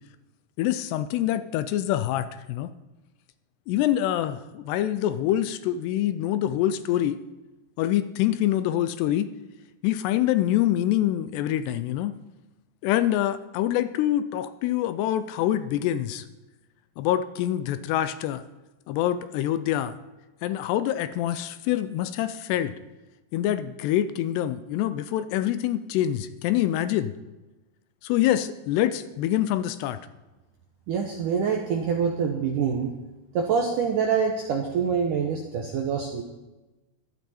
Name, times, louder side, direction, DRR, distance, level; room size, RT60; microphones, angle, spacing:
voice 1, 0.6-2.7 3.7-7.2 7.8-9.3 9.8-12.2 12.8-16.2 17.0-18.4 18.9-19.9 20.4-22.7 23.3-27.1 28.0-30.0, left 12 dB, 80° left, 12 dB, 2.5 m, -25 dB
voice 2, 30.9-32.9 33.3-36.2, right 6 dB, 75° right, 2 dB, 1.9 m, -25 dB
15.5 x 12.0 x 4.3 m, 1.1 s
omnidirectional pair, 5.1 m